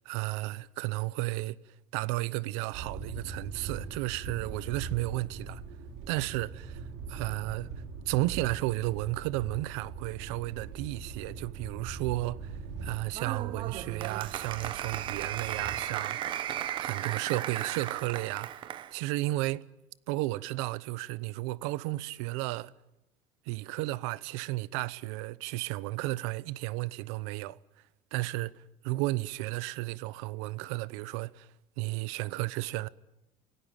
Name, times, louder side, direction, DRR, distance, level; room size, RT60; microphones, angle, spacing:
voice 1, 0.1-1.6 1.9-5.6 6.1-7.7 8.1-16.4 16.7-18.5 18.9-19.7 20.1-22.7 23.5-27.6 28.1-31.5 31.8-32.9, right 20 dB, 85° right, 0.8 m, -33 dB
sound 1, 2.7-15.8, right 5 dB, 50° right, 4.5 m, -42 dB
Applause, 13.1-18.9, right 11 dB, 35° right, 1.0 m, -36 dB
27.5 x 18.0 x 9.1 m
cardioid pair, 170°, 15 cm